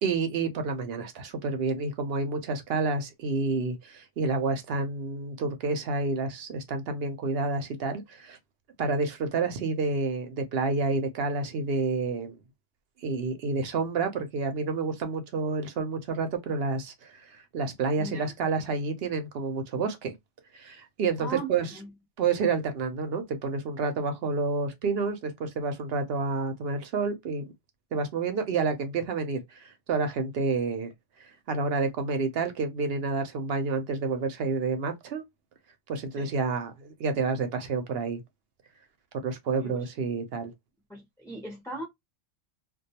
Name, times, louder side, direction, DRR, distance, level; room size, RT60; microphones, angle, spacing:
voice 1, 0.0-8.4 8.8-12.4 13.0-20.1 20.5-21.7 22.2-27.4 27.9-30.9 31.5-35.2 35.9-38.2 39.2-40.5, right 4 dB, 60° right, 0.7 m, -29 dB
voice 2, 18.0-18.3 21.2-21.9 36.2-36.3 39.6-39.7 40.9-41.8, right 3 dB, 5° left, 0.4 m, -38 dB
2.3 x 2.2 x 2.7 m
omnidirectional pair, 1.3 m